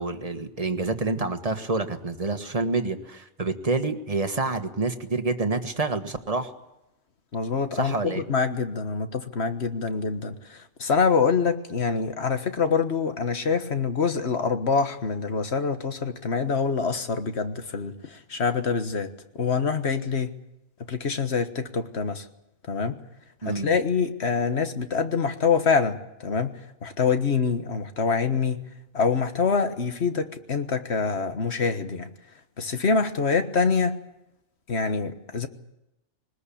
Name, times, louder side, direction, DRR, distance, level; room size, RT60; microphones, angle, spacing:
voice 1, 0.0-6.5 7.7-8.2 23.4-23.7, right 3 dB, 30° right, 7 dB, 1.6 m, -28 dB
voice 2, 7.3-20.3 20.9-22.3 22.7-23.0 23.4-28.6 28.9-32.1 32.6-34.0 34.7-35.5, left 5 dB, 60° left, 8 dB, 1.7 m, -25 dB
21.5 x 20.0 x 8.5 m, 0.89 s
omnidirectional pair, 1.3 m